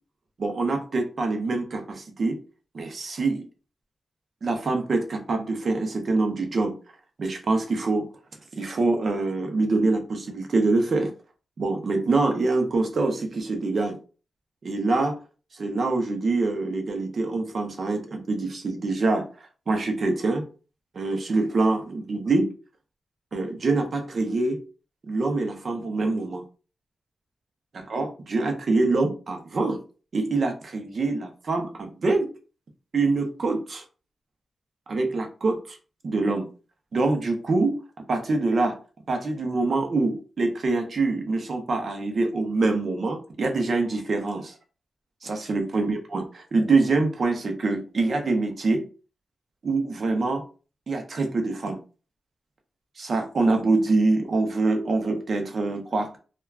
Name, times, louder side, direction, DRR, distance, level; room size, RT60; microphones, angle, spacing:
voice 1, 0.4-2.4 2.7-3.4 4.4-6.7 7.2-8.1 8.5-11.1 11.6-14.0 14.6-15.2 15.5-19.3 19.7-20.4 20.9-22.5 23.3-24.6 25.1-26.4 27.7-29.8 30.1-32.3 32.9-33.8 34.9-35.8 36.0-36.5 36.9-37.8 38.1-38.8 39.1-44.5 45.2-48.8 49.6-50.4 50.9-51.8 53.0-56.2, right 3 dB, 45° right, 4 dB, 0.6 m, -25 dB
3.4 x 2.2 x 2.3 m, 0.35 s
wide cardioid pair, 155°, 0 cm